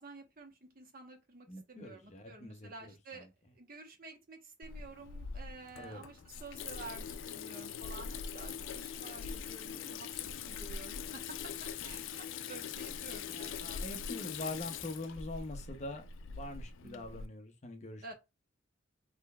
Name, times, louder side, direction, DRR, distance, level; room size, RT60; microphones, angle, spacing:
voice 1, 0.0-3.3 3.5-11.5 11.8-14.0 16.8-17.2 18.0-18.1, right 3 dB, 50° right, 1.0 m, -51 dB
voice 2, 1.5-2.7 3.1-3.3 5.8-6.0 13.8-16.0 16.3-18.1, left 2 dB, 35° left, 0.7 m, -43 dB
Water tap faucet / Sink (filling or washing), 4.6-17.3, left 6 dB, 80° left, 0.4 m, -42 dB
3.7 x 3.2 x 2.2 m
head